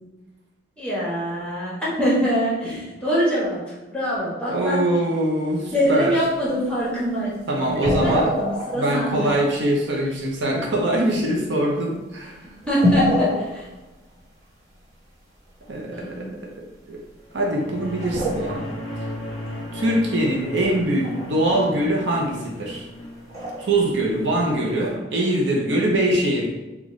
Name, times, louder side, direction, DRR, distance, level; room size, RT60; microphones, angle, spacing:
voice 1, 0.8-4.8 5.7-7.6 8.0-9.4 12.7-13.7 15.9-16.3 25.7-25.8, equal, 5° left, -7 dB, 1.0 m, -24 dB
voice 2, 4.5-6.2 7.5-8.3 8.7-12.4 15.7-16.3 16.9-17.0 17.3-18.7 19.7-22.9 23.6-26.5, right 1 dB, 70° right, -1 dB, 0.6 m, -23 dB
sound 1, 5.8-5.9 7.5-9.9 10.5-10.6 11.1-11.2 11.9-12.0 12.6-13.8 14.2-14.3 15.7-15.8 17.4-17.6 18.0-18.7 19.0-19.1 19.4-19.5 19.8-21.8 22.2-22.5 23.3-23.7 24.4-24.5 24.7-24.8, left 1 dB, 35° right, 1.2 m, -26 dB
sound 2, 17.3-23.9, left 1 dB, 25° left, 0.6 m, -35 dB
3.9 x 2.3 x 3.0 m, 1.1 s
head